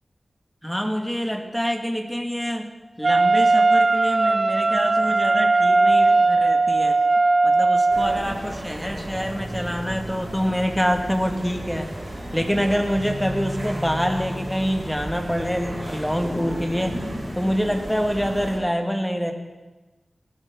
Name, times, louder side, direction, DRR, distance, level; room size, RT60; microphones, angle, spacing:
voice 1, 0.6-2.7 3.0-7.0 7.4-11.9 12.3-17.0 17.4-19.3, equal, ahead, 4 dB, 1.6 m, -26 dB
Wind instrument woodwind instrument, 3.0-8.3, right 3 dB, 55° right, 0.5 m, -18 dB
sound 1, 7.9-18.6, equal, 35° right, 5.6 m, -33 dB
18.5 x 12.0 x 3.6 m, 1.2 s
wide cardioid pair, 55°, 0 cm